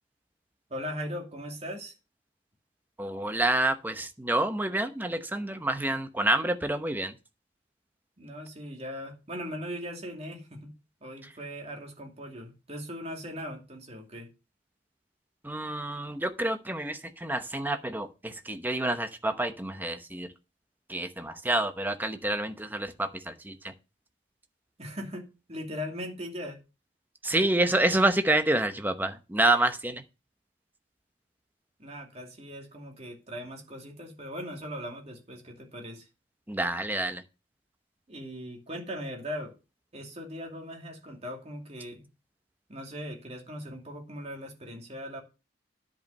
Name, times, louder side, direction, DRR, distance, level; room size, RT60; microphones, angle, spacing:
voice 1, 0.7-1.9 8.2-10.7 11.0-14.3 24.8-26.6 31.8-36.1 38.1-39.5 39.9-42.1 42.7-45.2, equal, 35° right, 2.6 m, -39 dB
voice 2, 3.0-7.1 15.4-20.3 20.9-23.7 27.2-30.0 36.5-37.2, right 1 dB, 10° right, 0.9 m, -28 dB
10.0 x 5.3 x 6.7 m
head